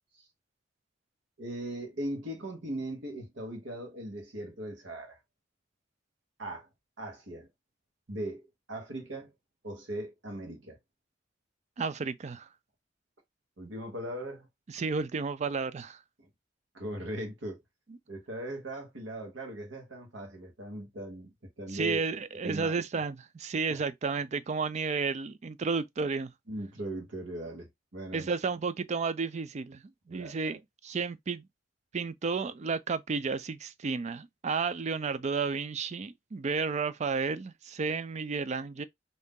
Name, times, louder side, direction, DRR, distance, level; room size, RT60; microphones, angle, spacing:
voice 1, 1.4-5.2 6.4-6.7 7.0-7.5 8.1-9.3 9.6-10.8 13.6-14.5 16.2-16.3 16.7-17.6 18.1-22.0 22.4-22.8 23.7-23.8 26.5-28.3 30.1-30.6, right 1 dB, 80° right, 1.2 m, -39 dB
voice 2, 11.8-12.5 14.7-16.0 21.7-26.3 28.1-29.8 30.1-31.5 31.9-38.8, right 4 dB, 40° right, 0.4 m, -32 dB
2.7 x 2.5 x 3.6 m
head